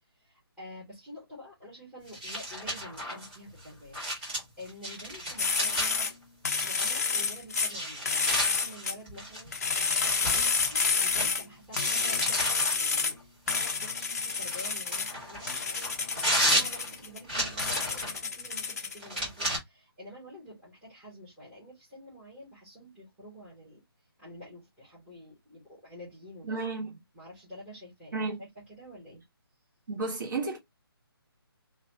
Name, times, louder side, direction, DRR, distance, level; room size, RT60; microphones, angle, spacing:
voice 1, 0.2-6.1 6.6-23.8 24.2-26.6 27.1-29.2, equal, 5° right, 0.8 m, -48 dB
sound 1, 2.1-6.1 6.6-7.1 7.6-11.3 11.7-12.8 13.4-18.2 19.0-19.6, right 1 dB, 20° right, 1.6 m, -33 dB
sound 2, 5.4-6.1 6.4-7.7 8.1-9.0 9.5-11.5 11.8-13.1 13.5-15.1 15.5-17.2 17.6-19.2, left 5 dB, 40° left, 0.4 m, -29 dB
voice 2, 26.5-27.0 28.1-28.4 29.9-30.6, right 3 dB, 50° right, 1.0 m, -32 dB
2.7 x 2.2 x 2.7 m
hypercardioid pair, 170°, 13 cm